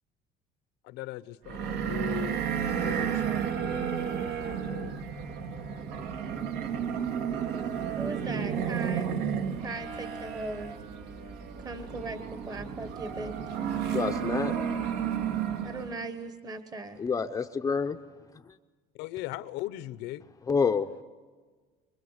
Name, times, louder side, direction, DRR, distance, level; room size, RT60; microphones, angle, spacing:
voice 1, 0.8-2.4 2.8-5.0 19.0-20.3, left 16 dB, 85° left, 1.0 m, -39 dB
sound 1, 1.5-16.0, right 8 dB, 75° right, 2.1 m, -32 dB
voice 2, 7.9-9.1 9.6-10.7 11.6-13.3 15.6-17.0, right 3 dB, 20° right, 1.2 m, -38 dB
voice 3, 13.9-14.5 17.0-18.0 20.5-20.9, left 5 dB, 20° left, 0.7 m, -27 dB
25.5 x 23.0 x 8.1 m
cardioid pair, 160°, 17 cm